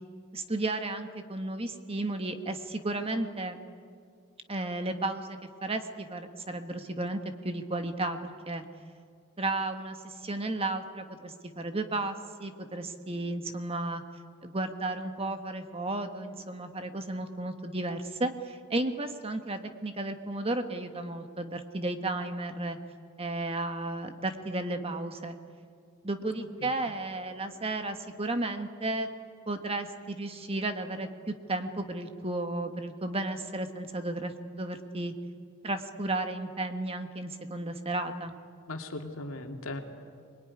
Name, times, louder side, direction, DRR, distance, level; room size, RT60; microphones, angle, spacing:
voice 1, 0.3-3.6 4.5-8.2 8.5-8.6 9.4-14.0 14.4-22.8 23.2-25.3 26.0-29.1 29.5-35.1 35.6-38.3, right 2 dB, 25° right, 7 dB, 1.4 m, -33 dB
voice 2, 38.7-39.8, left 2 dB, 75° left, 3 dB, 2.5 m, -38 dB
25.5 x 21.5 x 9.8 m, 2.2 s
head